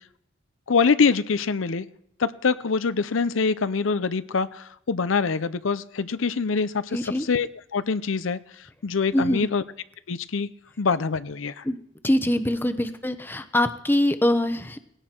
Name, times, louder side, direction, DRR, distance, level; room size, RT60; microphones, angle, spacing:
voice 1, 0.7-1.9 2.2-8.4 8.8-9.6 10.1-10.5 10.8-11.6, left 5 dB, 75° left, 0.6 m, -24 dB
voice 2, 6.9-7.3 9.1-9.5 11.6-11.8 12.0-14.8, left 1 dB, 10° left, 0.8 m, -23 dB
19.0 x 16.5 x 4.5 m
head